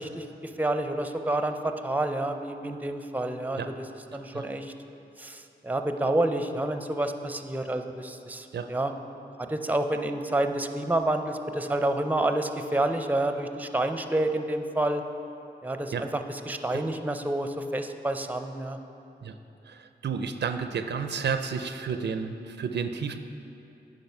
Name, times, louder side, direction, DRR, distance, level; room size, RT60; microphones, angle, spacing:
voice 1, 0.0-3.7 4.1-4.7 5.2-8.9 9.4-15.0 15.6-18.8, right 1 dB, 10° right, 7 dB, 0.5 m, -29 dB
voice 2, 19.7-23.2, right 6 dB, 75° right, 9 dB, 0.4 m, -31 dB
9.0 x 5.0 x 5.5 m, 2.9 s
cardioid pair, 45°, 18 cm